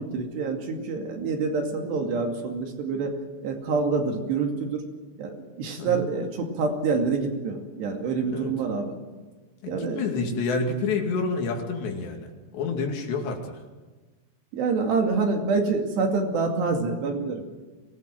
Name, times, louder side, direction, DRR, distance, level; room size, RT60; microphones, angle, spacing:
voice 1, 0.0-3.2 3.4-4.8 5.2-8.9 9.7-10.1 14.5-17.4, right 4 dB, 70° right, 3 dB, 4.6 m, -26 dB
voice 2, 9.6-13.4, left 4 dB, 75° left, 3 dB, 4.5 m, -28 dB
23.5 x 18.5 x 7.7 m, 1.3 s
omnidirectional pair, 5.1 m